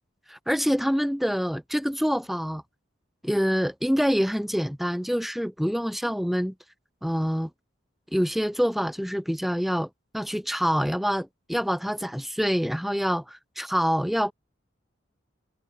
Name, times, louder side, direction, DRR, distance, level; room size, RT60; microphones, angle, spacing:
voice 1, 0.3-2.6 3.2-6.5 7.0-7.5 8.1-9.9 10.1-14.3, equal, ahead, 0.9 m, -26 dB
head